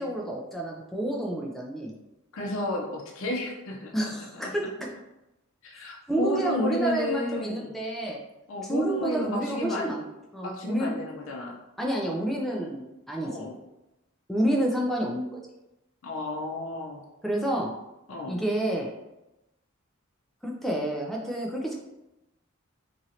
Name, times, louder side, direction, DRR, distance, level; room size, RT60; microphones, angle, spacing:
voice 1, 0.0-1.9 3.9-4.6 6.1-8.2 8.7-10.0 10.3-10.9 11.8-13.5 14.3-15.3 17.2-17.7 18.3-18.9 20.4-21.8, right 1 dB, ahead, -2 dB, 0.4 m, -29 dB
voice 2, 2.3-4.5 5.6-7.7 8.5-9.9 10.4-11.6 13.2-13.6 16.0-17.0 18.1-18.4, left 2 dB, 70° left, -1 dB, 0.5 m, -32 dB
3.0 x 2.6 x 2.8 m, 0.94 s
head